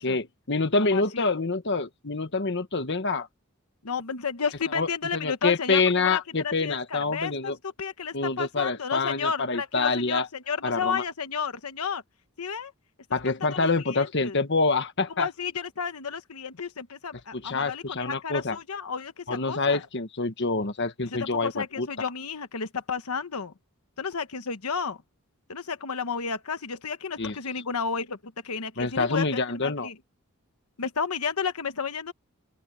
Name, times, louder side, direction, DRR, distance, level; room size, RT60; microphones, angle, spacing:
voice 1, 0.0-3.3 4.7-7.6 8.1-10.3 10.6-11.0 13.1-15.3 17.3-18.6 19.3-21.9 27.2-27.3 28.8-29.9, left 3 dB, 55° left, 1.4 m, -26 dB
voice 2, 0.8-1.2 3.8-12.0 12.4-12.7 13.4-14.4 15.2-19.8 21.0-23.5 24.0-25.0 25.5-29.9 30.8-32.1, left 5 dB, 90° left, 1.1 m, -32 dB
open air
head